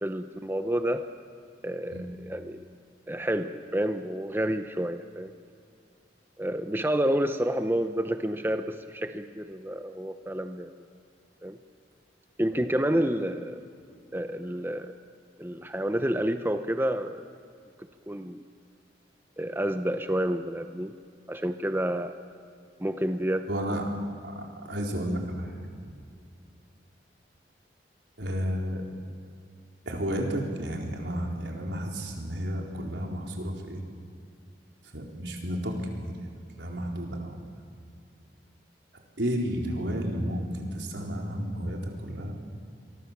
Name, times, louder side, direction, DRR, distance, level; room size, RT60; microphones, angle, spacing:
voice 1, 0.0-1.1 1.6-2.6 3.1-5.3 6.4-10.7 11.4-11.6 12.4-13.6 14.1-14.9 15.4-17.3 17.8-18.4 19.4-20.9 21.3-22.2 22.8-23.5, right 1 dB, 10° right, 8 dB, 0.8 m, -29 dB
voice 2, 23.5-23.8 24.2-25.5 28.2-28.8 29.8-33.8 34.9-36.1 36.6-37.3 39.2-42.3, equal, 85° right, 1 dB, 4.3 m, -32 dB
27.5 x 23.0 x 7.5 m, 2.4 s
head